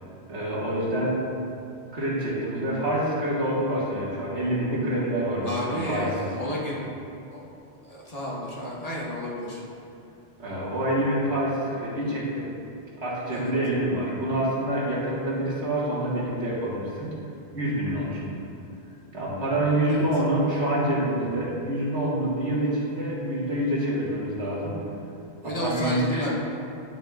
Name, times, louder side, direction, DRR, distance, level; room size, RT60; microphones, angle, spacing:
voice 1, 0.3-1.1 1.9-6.1 10.4-12.5 13.0-17.1 17.5-18.2 19.1-24.8 25.4-26.3, right 1 dB, 80° right, -6 dB, 2.0 m, -26 dB
voice 2, 5.4-6.9 7.3-7.4 7.8-9.6 13.3-13.5 19.9-20.0 25.4-26.4, equal, 35° left, -6 dB, 1.5 m, -32 dB
11.0 x 7.4 x 2.5 m, 2.7 s
omnidirectional pair, 1.1 m